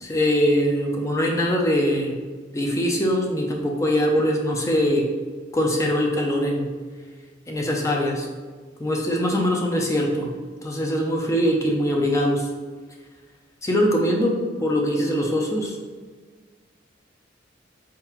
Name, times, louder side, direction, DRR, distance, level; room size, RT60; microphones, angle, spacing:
voice 1, 0.0-2.2 2.5-5.0 5.5-6.7 7.5-8.3 8.8-10.3 10.6-12.5 13.6-14.3 14.6-15.8, equal, 15° left, 0 dB, 0.5 m, -22 dB
4.5 x 3.7 x 2.9 m, 1.5 s
head